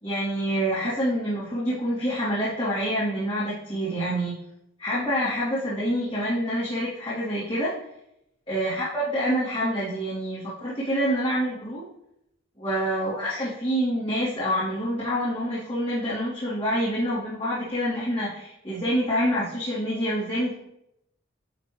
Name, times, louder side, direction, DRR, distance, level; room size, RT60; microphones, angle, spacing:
voice 1, 0.0-4.4 4.8-7.8 8.5-11.9 12.6-20.5, equal, 30° left, -13 dB, 2.4 m, -27 dB
10.0 x 3.5 x 3.3 m, 0.81 s
head